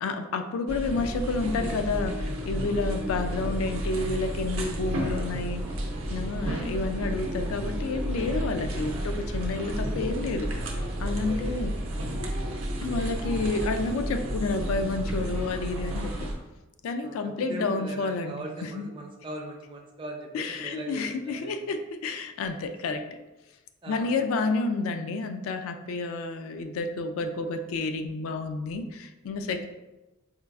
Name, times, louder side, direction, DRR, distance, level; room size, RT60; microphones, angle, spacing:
voice 1, 0.0-5.7 6.1-10.5 11.0-11.7 12.8-16.3 16.8-18.9 20.3-23.0 23.9-29.7, left 3 dB, 75° left, 7 dB, 0.3 m, -30 dB
sound 1, 0.7-16.3, equal, 85° right, 0.6 m, -31 dB
voice 2, 6.3-6.6 11.2-11.6 17.0-21.6 23.8-24.1, right 1 dB, 25° right, -1 dB, 0.4 m, -40 dB
4.3 x 2.3 x 2.3 m, 1.1 s
head